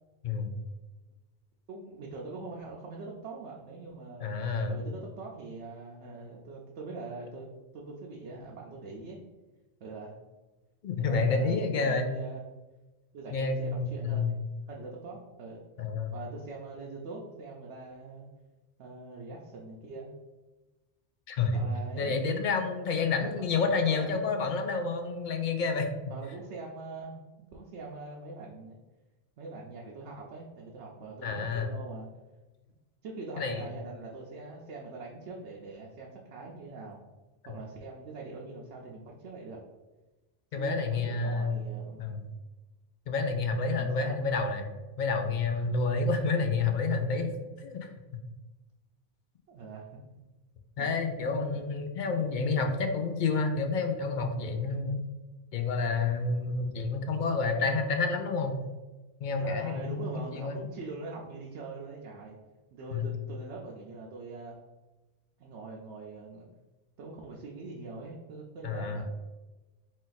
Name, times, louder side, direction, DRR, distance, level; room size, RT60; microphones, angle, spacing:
voice 1, 1.7-4.3 4.7-9.2 9.8-10.2 10.9-12.4 13.1-14.4 14.7-15.6 16.1-18.3 18.8-20.1 21.5-22.1 23.2-24.4 26.1-28.8 29.4-32.1 33.0-37.0 37.5-39.6 40.5-42.0 43.7-44.2 49.5-50.2 50.8-50.9 51.6-51.7 59.4-62.4 62.7-64.6 65.4-66.5 67.0-69.0, right 3 dB, 90° right, -2 dB, 0.9 m, -43 dB
voice 2, 4.2-4.8 10.8-12.1 13.3-14.3 15.8-16.1 21.3-21.6 22.0-25.9 31.2-31.7 33.4-33.6 37.5-37.6 40.5-41.6 42.0-42.2 43.1-44.7 45.0-47.3 47.6-47.9 50.8-55.0 55.5-58.6 59.2-60.6 62.9-63.1 68.6-69.0, left 4 dB, 55° left, 5 dB, 0.6 m, -29 dB
4.2 x 2.5 x 3.9 m, 1.2 s
omnidirectional pair, 1.1 m